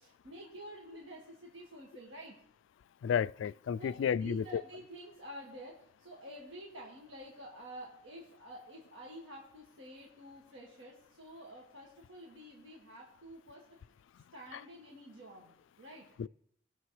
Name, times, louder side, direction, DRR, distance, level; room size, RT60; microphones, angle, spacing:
voice 1, 0.0-2.4 3.8-13.7 14.3-16.1, equal, 90° right, 1.8 m, -50 dB
voice 2, 3.0-4.4 16.2-16.3, left 7 dB, 90° left, 0.3 m, -31 dB
19.5 x 6.7 x 3.2 m
head